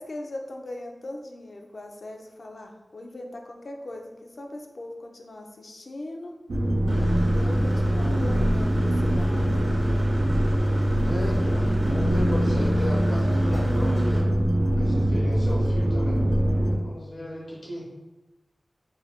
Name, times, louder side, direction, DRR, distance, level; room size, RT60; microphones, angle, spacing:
voice 1, 0.0-6.3 7.2-9.6 11.4-11.5, left 1 dB, 65° left, 2 dB, 0.4 m, -40 dB
sound 1, 6.5-16.8, equal, 90° right, 0.4 m, -22 dB
Engine / Mechanisms, 6.9-14.2, right 1 dB, 65° right, 0.7 m, -36 dB
voice 2, 11.0-14.3 14.8-16.2 16.8-17.9, left 1 dB, 90° left, -5 dB, 0.9 m, -35 dB
2.5 x 2.2 x 3.4 m, 1.1 s
wide cardioid pair, 60°, 0 cm